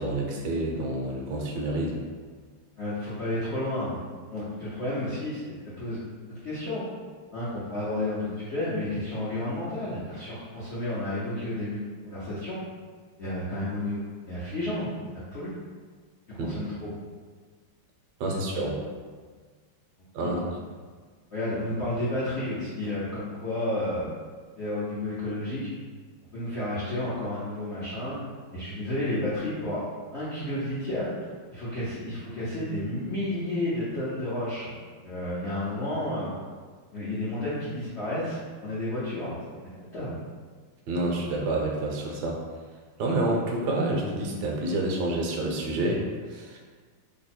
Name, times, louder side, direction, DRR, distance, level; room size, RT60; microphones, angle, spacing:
voice 1, 0.0-2.0 16.5-16.6 18.2-18.8 20.1-20.4 40.9-42.4 43.0-46.6, right 2 dB, 70° right, 0 dB, 1.1 m, -28 dB
voice 2, 2.8-6.8 7.3-11.8 12.0-12.6 13.2-15.0 15.3-15.6 16.3-16.9 18.5-18.7 20.2-20.5 21.3-24.1 24.6-25.7 26.3-28.2 28.5-29.8 30.1-36.3 36.9-39.6 39.9-40.2, left 1 dB, 70° left, -10 dB, 0.6 m, -31 dB
3.3 x 2.0 x 4.2 m, 1.5 s
omnidirectional pair, 2.2 m